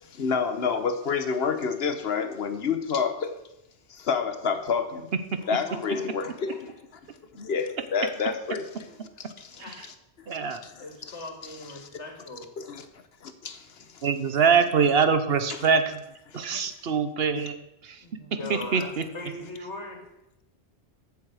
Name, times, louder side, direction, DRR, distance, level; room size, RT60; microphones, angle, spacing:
voice 1, 0.0-3.4 3.9-5.1 5.5-6.5 7.3-8.7 9.4-9.6 10.6-11.1 11.8-11.9 12.6-12.8 13.2-14.1 16.3-16.7, left 5 dB, 65° left, 1.2 m, -29 dB
voice 2, 5.4-6.7 8.9-9.0 9.5-9.8 10.8-12.5 18.0-18.9 19.1-20.0, left 1 dB, 80° left, 2.7 m, -40 dB
voice 3, 10.3-10.6 14.0-16.0 16.3-17.6 17.8-18.0 18.5-19.1, right 6 dB, 65° right, 1.1 m, -24 dB
14.5 x 7.0 x 4.9 m
omnidirectional pair, 1.1 m